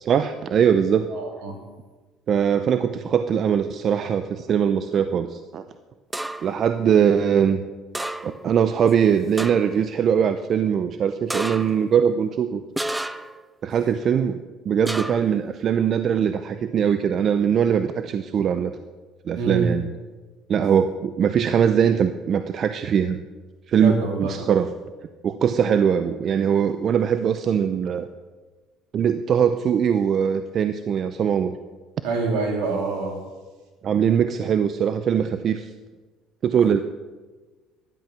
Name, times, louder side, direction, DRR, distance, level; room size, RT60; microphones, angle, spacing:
voice 1, 0.0-1.1 2.3-5.6 6.4-7.6 8.2-12.6 13.6-14.4 14.7-18.7 19.3-19.9 20.5-23.2 23.7-24.7 25.2-28.1 28.9-31.6 33.8-35.7 36.4-36.8, right 8 dB, 50° right, 10 dB, 0.6 m, -21 dB
voice 2, 1.1-1.6 19.4-19.7 23.7-24.3 32.0-33.2, right 4 dB, 80° right, 2 dB, 2.9 m, -26 dB
sound 1, 6.1-6.6 7.9-8.5 8.9-9.0 9.4-9.8 11.3-11.9 12.8-13.4 14.9-15.4, right 1 dB, 10° right, 0.6 m, -31 dB
12.5 x 10.5 x 6.0 m, 1.3 s
supercardioid pair, 80°, 0 cm